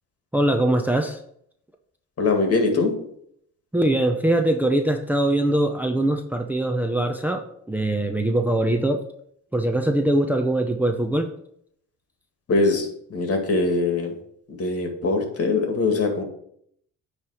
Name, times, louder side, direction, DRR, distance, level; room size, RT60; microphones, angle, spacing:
voice 1, 0.3-1.2 3.7-9.0 9.5-11.3, right 1 dB, 5° right, 5 dB, 0.7 m, -22 dB
voice 2, 2.2-2.9 12.5-14.1 14.5-16.2, left 3 dB, 50° left, 3 dB, 2.1 m, -22 dB
8.8 x 3.3 x 6.3 m, 0.69 s
cardioid pair, 90°, 30 cm